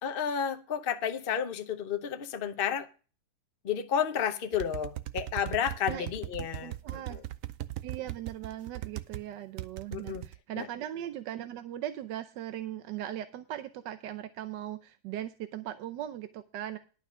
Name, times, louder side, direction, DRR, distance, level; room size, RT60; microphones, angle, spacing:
voice 1, 0.0-2.9 3.6-7.2 9.9-10.3 10.6-10.7, left 8 dB, 60° left, 0.5 m, -32 dB
sound 1, 4.5-9.2 9.6-10.4, right 14 dB, 90° right, 0.7 m, -38 dB
voice 2, 6.6-7.2 7.8-16.8, right 12 dB, 70° right, 1.2 m, -39 dB
11.5 x 5.8 x 6.2 m
omnidirectional pair, 2.2 m